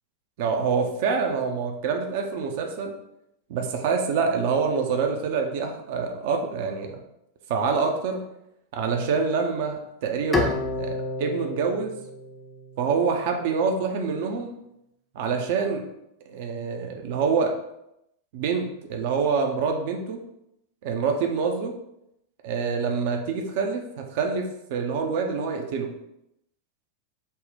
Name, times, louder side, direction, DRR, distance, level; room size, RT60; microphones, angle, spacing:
voice 1, 0.4-2.9 3.5-7.0 7.5-8.2 8.7-11.9 12.8-14.5 15.1-15.8 16.3-17.5 18.3-20.2 20.8-21.7 22.4-25.9, right 5 dB, 50° right, 3 dB, 0.5 m, -26 dB
Bowed string instrument, 10.3-13.6, left 3 dB, 10° left, 0.5 m, -30 dB
4.1 x 2.1 x 3.4 m, 0.81 s
figure-of-eight pair, 90°, 0 cm